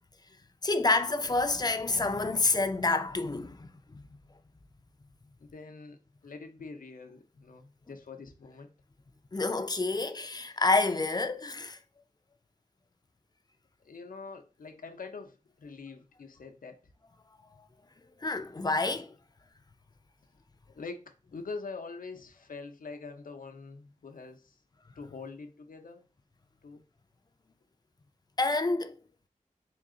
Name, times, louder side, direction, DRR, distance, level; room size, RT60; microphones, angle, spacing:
voice 1, 0.6-4.0 9.3-11.8 18.2-19.1 28.4-29.0, left 3 dB, 30° left, 0.4 m, -28 dB
voice 2, 5.4-6.0 6.2-8.7 13.8-16.8 20.7-21.0 21.3-24.6 25.0-26.1 26.6-26.8, left 4 dB, 85° left, 0.6 m, -44 dB
3.8 x 2.4 x 3.6 m
wide cardioid pair, 70°, 14 cm